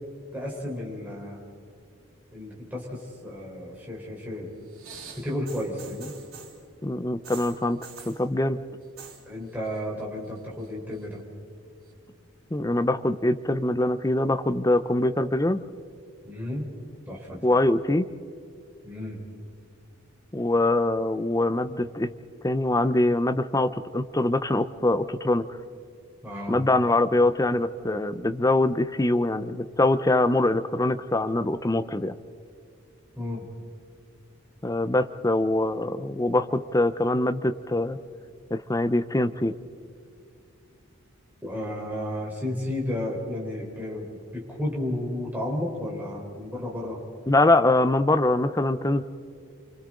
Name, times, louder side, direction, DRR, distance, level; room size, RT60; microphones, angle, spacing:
voice 1, 0.3-1.4 2.3-4.5 5.2-6.1 9.2-11.2 16.2-16.7 17.1-17.4 18.8-19.2 26.2-26.5 33.2-33.5 41.4-47.0, left 1 dB, 10° right, -4 dB, 4.2 m, -32 dB
sound 1, 4.7-6.6 7.2-8.2 8.8-9.2 9.5-10.0 10.3-11.1 11.9-12.0, right 6 dB, 75° right, 3.9 m, -45 dB
voice 2, 6.8-7.8 8.1-8.6 12.5-15.7 17.4-18.1 20.3-22.1 22.4-25.5 26.5-32.2 34.6-38.0 38.5-39.5 47.3-49.0, left 2 dB, 15° left, 10 dB, 0.6 m, -23 dB
29.5 x 25.5 x 3.9 m, 2.5 s
head